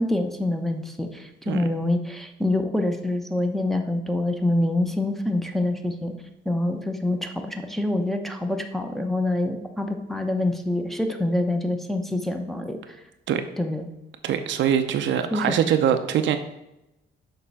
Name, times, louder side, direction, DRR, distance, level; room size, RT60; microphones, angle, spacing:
voice 1, 0.0-6.1 6.5-13.0 13.6-13.9 15.3-15.5, left 1 dB, ahead, 3 dB, 0.7 m, -26 dB
voice 2, 14.2-16.4, right 9 dB, 70° right, 8 dB, 0.6 m, -23 dB
6.7 x 3.1 x 5.7 m, 0.91 s
cardioid pair, 90°, 20 cm